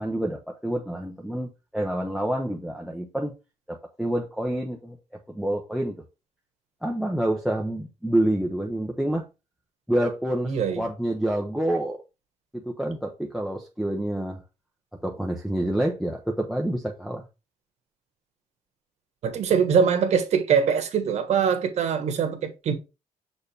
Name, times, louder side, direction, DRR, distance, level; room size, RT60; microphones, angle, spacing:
voice 1, 0.0-3.3 3.7-5.0 5.3-6.0 6.8-9.3 9.9-12.0 12.5-14.4 15.0-17.2, right 1 dB, ahead, 0.7 m, -27 dB
voice 2, 10.4-10.8 19.2-22.7, right 7 dB, 55° right, 1.4 m, -23 dB
6.7 x 4.4 x 3.3 m
cardioid pair, 150°, 13 cm